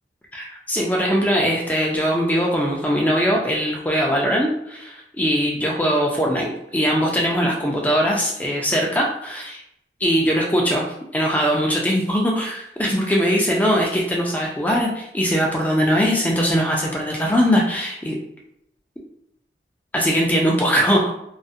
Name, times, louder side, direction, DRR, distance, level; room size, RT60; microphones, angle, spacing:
voice 1, 0.3-9.6 10.0-10.8 11.1-18.2 19.9-21.1, equal, 10° left, -1 dB, 0.3 m, -21 dB
2.3 x 2.1 x 2.6 m, 0.75 s
head